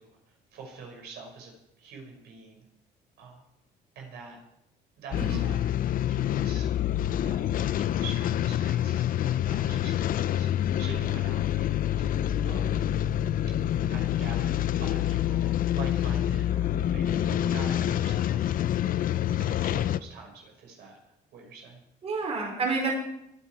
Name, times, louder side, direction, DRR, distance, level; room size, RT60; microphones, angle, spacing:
voice 1, 0.0-2.6 3.2-3.4 3.9-4.4 5.0-6.7 7.2-12.1 12.4-12.7 13.5-21.0 21.3-21.8 22.8-22.9, right 4 dB, 75° right, 1 dB, 6.1 m, -45 dB
sound 1, 5.1-20.0, left 11 dB, 55° left, 0.6 m, -27 dB
voice 2, 22.0-22.9, right 4 dB, 40° right, 0 dB, 4.8 m, -30 dB
23.5 x 10.0 x 4.8 m, 0.79 s
cardioid pair, 110°, 17 cm